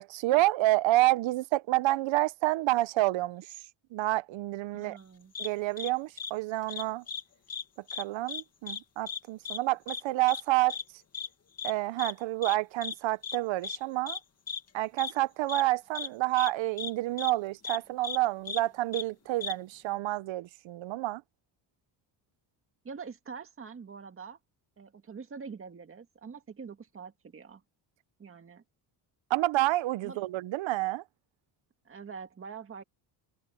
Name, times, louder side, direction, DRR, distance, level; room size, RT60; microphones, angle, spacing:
voice 1, 0.0-3.5 3.9-5.0 5.4-7.0 8.0-10.8 11.6-14.2 14.7-21.2 29.3-31.0, right 18 dB, 75° right, 0.9 m, -28 dB
voice 2, 4.7-5.3 22.8-24.4 24.8-27.6 28.2-28.6 30.0-30.2 31.9-32.8, right 5 dB, 30° right, 2.0 m, -44 dB
sound 1, 5.4-5.5 5.8-5.9 6.2-6.3 6.7-7.2 7.5-7.6 7.9-8.4 8.7-8.8 9.1-9.2 9.5-9.6 9.9-10.0 10.3-10.4 10.7-10.8 11.1-11.3 11.6-11.7 12.0-12.1 12.4-12.6 12.8-13.0 13.2-13.4 13.6-13.8 14.1-14.2 14.5-14.6 15.0-15.1 15.5-15.6 16.0-16.1 16.4-16.5 16.8-16.9 17.2-17.3 17.6-17.8 18.0-18.2 18.5-18.6 18.9-19.0 19.4-19.5, left 6 dB, 35° left, 1.9 m, -36 dB
cardioid pair, 135°, 46 cm